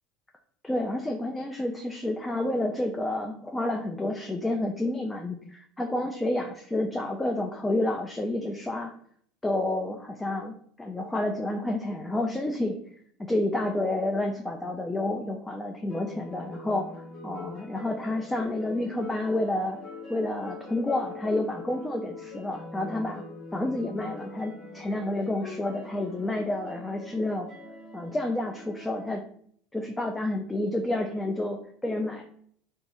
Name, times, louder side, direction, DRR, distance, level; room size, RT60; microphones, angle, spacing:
voice 1, 0.6-8.9 9.4-12.8 13.3-19.8 20.1-23.2 23.5-27.5 27.9-29.2 29.7-32.2, left 1 dB, 10° left, 3 dB, 0.3 m, -29 dB
sound 1, 15.9-29.1, left 2 dB, 35° left, 1.1 m, -43 dB
2.9 x 2.3 x 2.6 m, 0.62 s
hypercardioid pair, 85°, 0 cm